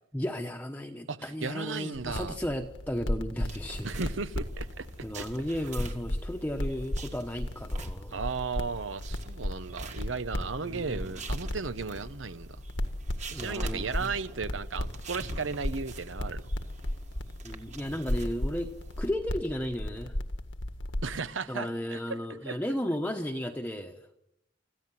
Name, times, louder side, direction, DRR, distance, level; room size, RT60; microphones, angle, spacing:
voice 1, 0.1-3.9 5.0-8.2 10.6-11.0 13.3-14.1 17.4-18.7 19.0-20.1 21.5-24.0, equal, 10° left, 1.0 m, -34 dB
voice 2, 1.1-2.4 3.8-4.9 5.2-5.3 8.1-12.6 13.3-16.4 21.0-22.2 22.5-22.6, right 4 dB, 90° right, 1.0 m, -35 dB
sound 1, 1.9-21.2, left 1 dB, 80° left, 1.7 m, -36 dB
sound 2, 3.5-19.1, right 3 dB, 40° right, 1.9 m, -47 dB
26.5 x 15.0 x 7.6 m
head